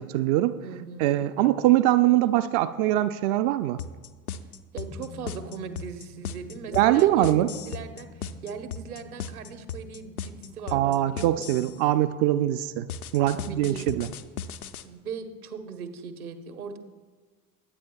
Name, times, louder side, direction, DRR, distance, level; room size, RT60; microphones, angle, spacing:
voice 1, 0.0-0.6 1.0-3.8 6.7-7.5 10.7-12.9 13.1-14.1, right 14 dB, 45° right, 11 dB, 0.4 m, -22 dB
voice 2, 0.6-1.2 4.7-11.7 13.3-13.9 14.8-16.8, right 6 dB, 75° right, 8 dB, 1.1 m, -39 dB
sound 1, 3.8-11.8 12.9-14.8, left 7 dB, 75° left, 0.7 m, -36 dB
sound 2, 4.9-14.0 14.3-14.4, left 6 dB, 15° left, 0.4 m, -49 dB
21.0 x 8.9 x 2.3 m, 1.5 s
figure-of-eight pair, 70°, 45 cm